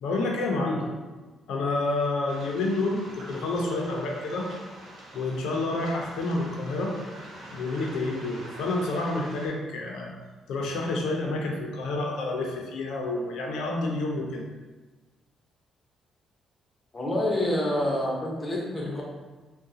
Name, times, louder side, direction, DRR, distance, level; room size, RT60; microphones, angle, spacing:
voice 1, 0.0-0.9 1.5-4.5 5.1-6.9 7.5-10.1 10.5-14.4, left 2 dB, 80° left, 0 dB, 0.6 m, -29 dB
Waves surf, 2.3-9.5, right 1 dB, 75° right, 1.0 m, -45 dB
voice 2, 16.9-19.0, left 1 dB, 25° left, -3 dB, 0.9 m, -27 dB
3.7 x 2.2 x 2.7 m, 1.3 s
cardioid pair, 90°, 0 cm